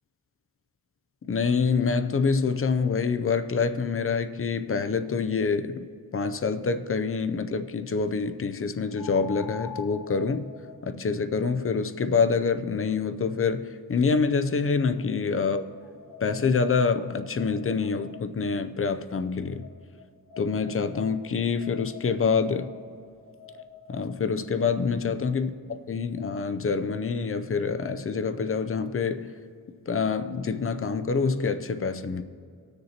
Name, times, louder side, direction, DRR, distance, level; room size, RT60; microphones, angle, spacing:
voice 1, 1.2-5.9 6.1-10.5 10.8-15.7 16.2-19.7 20.4-22.7 23.9-29.3 29.9-32.2, left 5 dB, 40° left, 10 dB, 0.4 m, -26 dB
sound 1, 6.4-6.5 8.9-14.1 14.9-18.6 19.6-24.2, left 6 dB, 70° left, 0.7 m, -47 dB
19.5 x 6.7 x 2.8 m, 2.3 s
wide cardioid pair, 120°, 37 cm